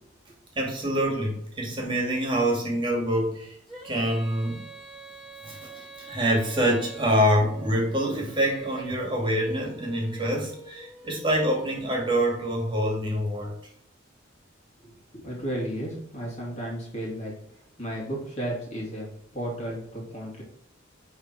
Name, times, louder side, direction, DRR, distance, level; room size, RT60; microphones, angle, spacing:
voice 1, 0.6-3.6 3.8-4.6 5.4-13.6, equal, 25° right, -1 dB, 2.0 m, -26 dB
Female singing, 3.7-12.5, right 3 dB, ahead, 3.4 m, -46 dB
voice 2, 14.8-17.3 17.8-19.1 19.3-20.4, right 1 dB, 35° left, -3 dB, 2.6 m, -33 dB
10.5 x 3.6 x 4.6 m, 0.72 s
head